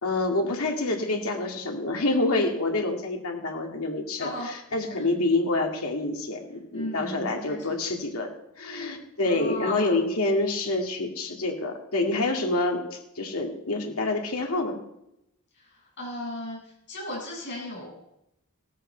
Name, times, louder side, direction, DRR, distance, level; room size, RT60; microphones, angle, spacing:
voice 1, 0.0-14.8, left 2 dB, 75° left, 1 dB, 2.2 m, -27 dB
voice 2, 4.2-4.5 4.9-5.0 6.7-7.8 9.2-10.0 16.0-16.6 16.9-18.1, left 1 dB, 55° left, -4 dB, 7.3 m, -35 dB
17.0 x 13.5 x 4.5 m, 0.81 s
head